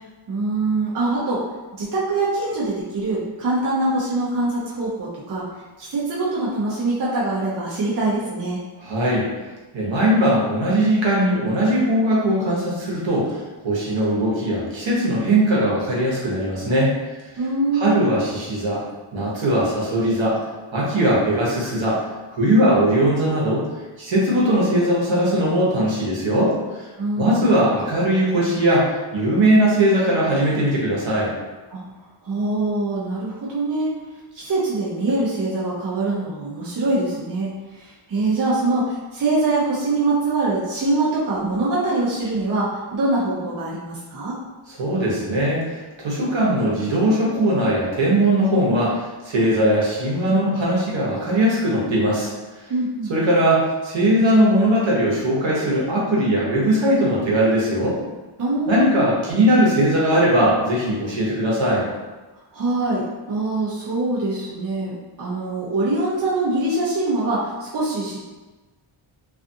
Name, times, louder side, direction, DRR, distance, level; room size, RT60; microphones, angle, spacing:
voice 1, 0.3-1.4 1.8-5.5 5.8-8.6 17.4-18.1 27.0-27.4 31.7-31.8 32.2-33.9 34.3-44.4 52.7-53.4 58.4-59.0 62.5-68.3, right 2 dB, 40° right, -6 dB, 0.6 m, -24 dB
voice 2, 8.8-9.3 9.7-13.3 13.6-16.9 17.7-18.8 19.1-20.4 20.7-22.0 22.3-23.6 24.0-26.5 26.8-26.9 27.2-31.3 44.7-52.3 53.1-58.0 58.7-61.9, right 1 dB, 65° right, -5 dB, 1.0 m, -19 dB
2.4 x 2.4 x 2.6 m, 1.2 s
wide cardioid pair, 135°, 50 cm